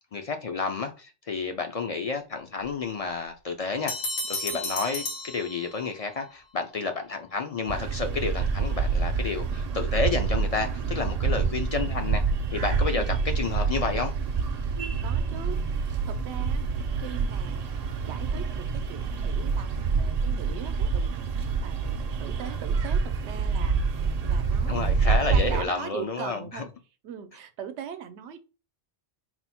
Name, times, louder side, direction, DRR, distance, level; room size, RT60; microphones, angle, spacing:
voice 1, 0.1-3.9 4.3-12.2 12.5-14.1 24.7-26.6, left 4 dB, 60° left, 0.4 m, -30 dB
Bell, 3.9-6.1, left 2 dB, 85° left, 1.1 m, -33 dB
sound 1, 7.7-25.6, right 5 dB, 55° right, 0.4 m, -27 dB
voice 2, 14.7-26.7 27.0-28.4, right 7 dB, 85° right, 0.9 m, -41 dB
4.2 x 2.0 x 4.2 m
omnidirectional pair, 1.1 m